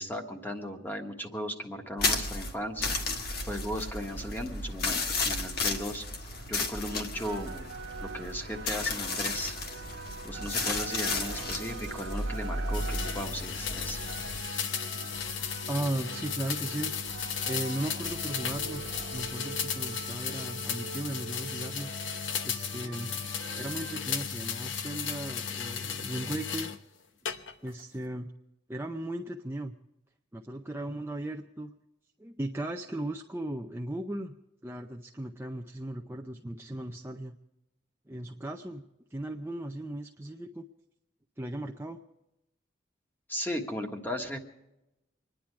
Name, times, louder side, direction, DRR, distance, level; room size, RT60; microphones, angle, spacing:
voice 1, 0.0-2.9 3.5-6.0 6.4-7.7 8.0-9.5 10.2-14.0 43.3-44.4, equal, 10° left, 3 dB, 1.5 m, -36 dB
sound 1, 2.0-14.4, left 3 dB, 55° left, 1.5 m, -33 dB
sound 2, 7.1-24.0, right 4 dB, 85° right, 1.2 m, -44 dB
sound 3, 12.7-26.8 27.3-27.8, left 7 dB, 90° left, 0.9 m, -35 dB
voice 2, 15.7-16.9 17.4-18.8 19.1-21.9 22.4-23.1 23.6-26.7 27.6-28.3 28.7-29.7 30.3-31.7 32.2-34.3 34.6-37.4 38.1-38.8 39.1-40.6 41.4-42.0, right 1 dB, 15° right, 2 dB, 0.6 m, -36 dB
25.5 x 10.5 x 4.7 m, 0.92 s
head